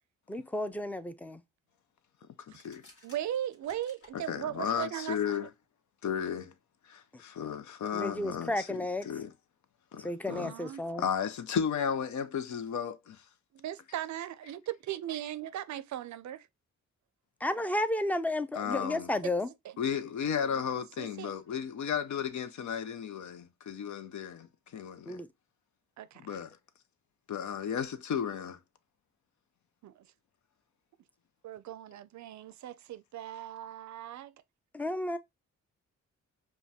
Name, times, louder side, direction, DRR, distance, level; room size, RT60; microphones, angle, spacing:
voice 1, 0.3-1.4 7.9-9.1 10.0-11.1 17.4-19.5 25.1-25.3 34.7-35.2, left 1 dB, 5° left, 0.4 m, -32 dB
sound 1, 2.4-4.2, left 2 dB, 45° left, 1.8 m, -57 dB
voice 2, 3.0-5.5 10.3-10.8 13.5-16.5 19.2-19.3 19.6-19.7 20.4-20.7 21.0-21.3 26.0-26.4 29.8-30.1 31.4-34.3, right 11 dB, 65° right, 0.5 m, -38 dB
voice 3, 4.1-5.5 6.0-6.5 6.9-8.8 9.1-9.3 9.9-10.5 11.0-13.2 18.5-19.1 19.8-24.5 24.7-25.2 26.2-26.5 27.3-28.6, left 7 dB, 70° left, 0.7 m, -34 dB
5.1 x 2.3 x 2.8 m
cardioid pair, 75°, 31 cm